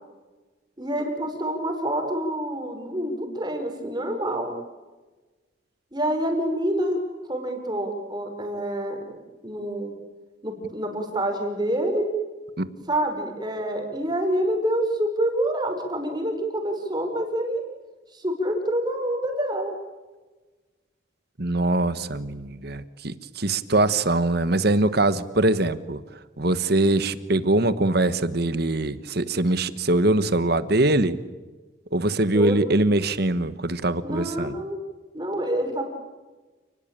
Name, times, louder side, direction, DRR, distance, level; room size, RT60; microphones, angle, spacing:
voice 1, 0.8-4.5 5.9-9.0 9.4-9.9 10.4-12.1 12.9-17.6 18.1-19.7 32.3-32.6 34.0-34.8 35.1-35.9, right 1 dB, 20° right, 4 dB, 4.9 m, -27 dB
voice 2, 21.4-26.0 26.4-31.2 31.9-34.5, right 2 dB, 50° right, 14 dB, 1.4 m, -22 dB
29.5 x 20.0 x 9.0 m, 1.3 s
head